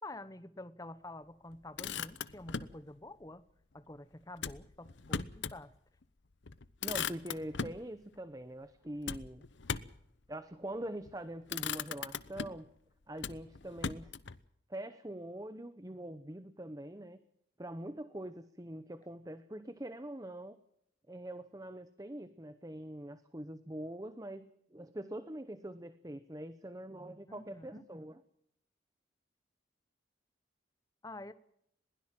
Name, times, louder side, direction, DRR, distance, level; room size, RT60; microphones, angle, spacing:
voice 1, 0.0-3.5 3.7-5.8 27.3-27.8 31.0-31.3, left 2 dB, 20° left, 13 dB, 0.9 m, -48 dB
Motor vehicle (road), 1.5-2.8 4.4-5.6 6.0-6.1 6.4-7.8 9.1-10.1 10.9-11.2 11.5-12.7 13.2-14.4, left 6 dB, 75° left, 0.9 m, -39 dB
voice 2, 6.8-9.4 10.3-12.6 13.1-14.1 14.7-17.2 17.6-20.6 21.1-28.2, right 1 dB, 20° right, 12 dB, 0.8 m, -44 dB
21.5 x 16.5 x 7.6 m, 0.74 s
head